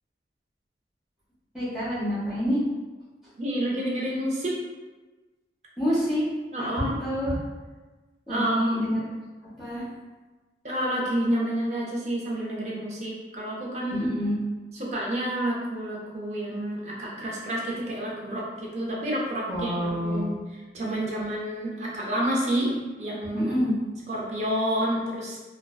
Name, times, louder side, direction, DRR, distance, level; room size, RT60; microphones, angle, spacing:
voice 1, 1.5-2.6 5.8-6.2 6.6-7.4 8.3-9.0 9.6-9.9 13.9-14.4 19.5-20.3 23.3-23.7, equal, ahead, -12 dB, 0.8 m, -27 dB
voice 2, 3.4-4.6 6.5-6.9 8.3-8.9 10.6-14.1 14.7-20.3 20.7-23.5 24.1-25.4, right 1 dB, 40° right, -4 dB, 0.5 m, -29 dB
2.5 x 2.2 x 2.2 m, 1.2 s
head